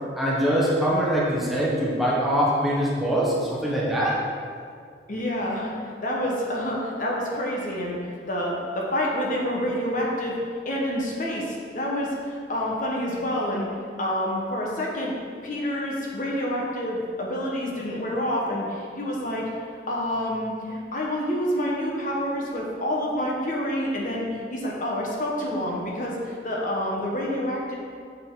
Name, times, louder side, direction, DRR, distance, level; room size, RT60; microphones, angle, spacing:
voice 1, 0.2-4.2, equal, ahead, -6 dB, 1.2 m, -23 dB
voice 2, 5.1-8.0 8.3-10.3 10.6-13.7 14.0-15.1 15.4-19.5 19.9-27.7, equal, 50° left, -3 dB, 1.2 m, -28 dB
6.9 x 6.8 x 3.8 m, 2.3 s
head